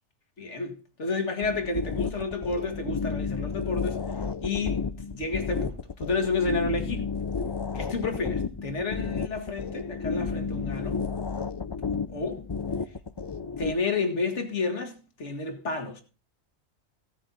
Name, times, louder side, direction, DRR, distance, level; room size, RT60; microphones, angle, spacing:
voice 1, 0.4-4.0 4.4-7.1 7.7-11.0 12.1-12.4 13.6-16.0, left 3 dB, 60° left, 2.2 m, -30 dB
sound 1, 1.4-13.7, left 5 dB, 40° left, 0.3 m, -32 dB
16.0 x 8.9 x 4.1 m
omnidirectional pair, 1.4 m